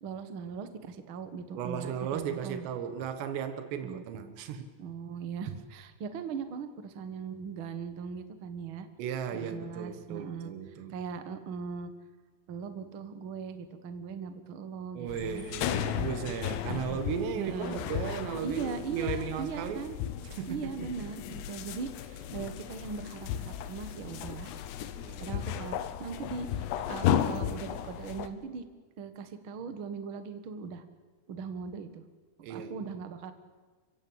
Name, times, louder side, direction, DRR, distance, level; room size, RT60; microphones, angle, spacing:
voice 1, 0.0-2.7 3.8-4.0 4.8-8.9 9.3-10.5 10.9-11.9 12.5-15.4 15.7-16.1 16.7-17.0 17.3-17.8 18.4-20.0 20.5-24.5 25.2-28.6 29.0-30.8 31.3-32.0 32.5-33.3, right 6 dB, 60° right, 9 dB, 1.3 m, -39 dB
voice 2, 1.6-4.7 9.0-11.0 15.0-19.8 20.2-20.9 25.0-25.7 32.4-32.8, right 8 dB, 85° right, 9 dB, 3.7 m, -36 dB
sound 1, 15.1-28.3, left 10 dB, 80° left, 3.2 m, -35 dB
29.0 x 16.5 x 8.9 m, 1.4 s
omnidirectional pair, 4.9 m